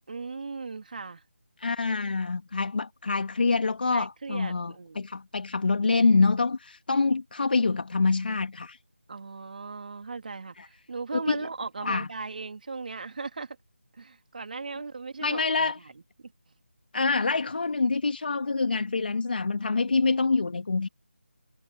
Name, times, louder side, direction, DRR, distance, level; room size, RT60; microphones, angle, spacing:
voice 1, 0.1-1.2 3.9-5.0 9.1-13.6 13.9-15.7, right 4 dB, 45° right, 3.3 m, -37 dB
voice 2, 1.6-8.8 10.6-10.7 11.1-11.4 11.8-12.1 15.2-15.8 16.9-20.9, left 4 dB, 50° left, 2.5 m, -26 dB
figure-of-eight pair, 170°, 7 cm